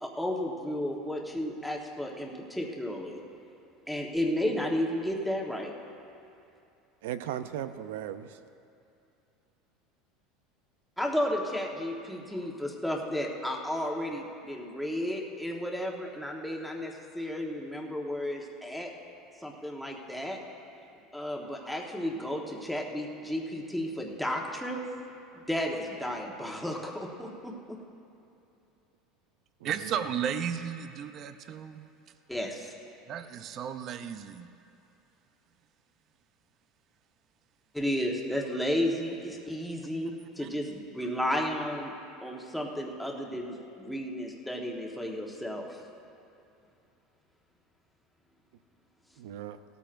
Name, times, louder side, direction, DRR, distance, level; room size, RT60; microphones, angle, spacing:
voice 1, 0.0-3.2 3.9-5.7 11.0-18.9 19.4-20.4 21.1-24.9 25.3-27.8 32.3-32.7 37.7-41.9 42.2-45.8, left 1 dB, ahead, -1 dB, 1.3 m, -33 dB
voice 2, 7.0-8.4 29.6-30.2 49.2-49.6, right 11 dB, 90° right, 11 dB, 0.5 m, -37 dB
voice 3, 29.6-31.9 33.1-34.5 40.4-40.5, right 8 dB, 40° right, 10 dB, 0.6 m, -34 dB
17.5 x 13.0 x 2.6 m, 2.7 s
supercardioid pair, 135°, 0 cm